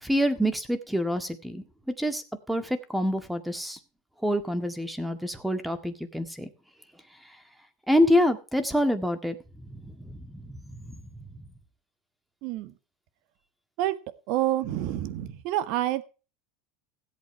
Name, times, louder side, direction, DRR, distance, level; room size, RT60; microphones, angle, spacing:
voice 1, 0.0-1.6 2.0-2.2 2.5-3.8 4.2-6.5 7.9-9.4 9.7-9.8 10.1-10.4 10.9-11.0, equal, 5° right, 9 dB, 1.9 m, -26 dB
voice 2, 12.4-12.7 13.8-13.9 14.3-16.0, right 13 dB, 60° right, 14 dB, 1.5 m, -28 dB
16.5 x 8.4 x 4.5 m, 0.33 s
supercardioid pair, 130°, 0 cm